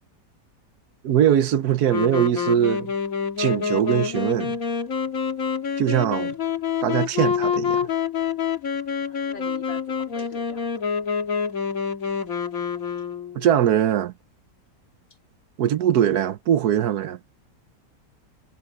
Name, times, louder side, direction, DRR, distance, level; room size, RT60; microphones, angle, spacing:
voice 1, 1.0-2.9 3.4-4.6 5.8-6.3 6.8-7.9 13.3-14.1 15.6-17.2, right 10 dB, 65° right, 1.2 m, -21 dB
Wind instrument woodwind instrument, 1.8-13.5, left 6 dB, 50° left, 2.0 m, -27 dB
voice 2, 9.0-11.1, left 5 dB, 85° left, 3.3 m, -45 dB
omnidirectional pair, 1.9 m